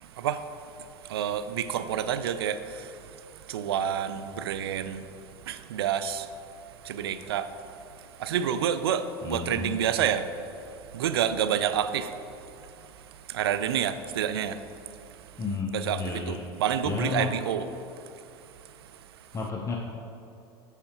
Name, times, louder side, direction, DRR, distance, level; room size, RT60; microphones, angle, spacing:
voice 1, 0.0-6.4 6.7-15.4 15.7-17.6, right 9 dB, 85° right, 11 dB, 0.4 m, -30 dB
voice 2, 9.2-9.7 15.4-15.7 16.0-16.4 16.8-17.3 19.3-19.8, left 4 dB, 25° left, 0 dB, 0.7 m, -31 dB
8.1 x 6.8 x 2.9 m, 2.8 s
hypercardioid pair, 90°, 13 cm